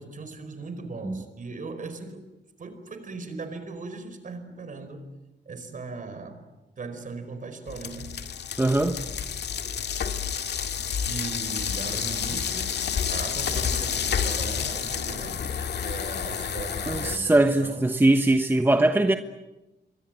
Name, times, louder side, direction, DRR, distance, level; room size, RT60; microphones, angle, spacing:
voice 1, 0.0-2.3 2.6-5.1 5.4-6.5 6.8-8.3 11.0-12.7 13.1-17.9, right 3 dB, 45° right, 4.8 m, -38 dB
sound 1, 7.7-17.2, left 7 dB, 65° left, 2.0 m, -29 dB
voice 2, 8.6-9.0 16.9-19.1, right 2 dB, 10° right, 1.2 m, -21 dB
27.0 x 23.5 x 9.0 m
cardioid pair, 110°, 18 cm